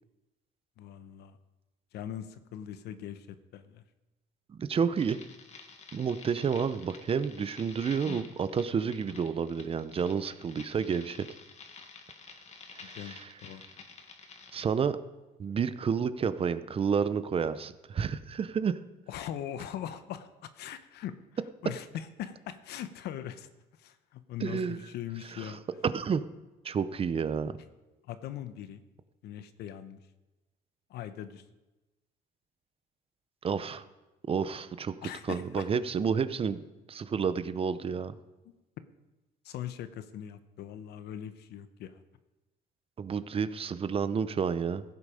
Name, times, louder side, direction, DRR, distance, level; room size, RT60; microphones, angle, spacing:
voice 1, 0.8-1.4 1.9-3.8 12.8-13.6 19.1-21.1 21.6-23.5 23.8-25.6 28.0-28.8 29.2-30.0 30.9-31.4 35.0-35.7 38.4-38.5 39.4-42.0, left 10 dB, 75° left, 11 dB, 1.0 m, -41 dB
voice 2, 4.6-5.2 5.9-11.3 12.7-13.3 14.5-15.0 15.4-18.8 24.4-24.8 25.4-25.5 25.8-26.2 26.6-27.5 33.4-33.8 34.3-34.9 35.3-38.1 43.0-44.8, right 6 dB, 35° right, 13 dB, 0.7 m, -30 dB
sound 1, 5.0-14.6, left 5 dB, 40° left, 1.8 m, -49 dB
15.5 x 8.3 x 5.1 m, 1.1 s
cardioid pair, 110°, 17 cm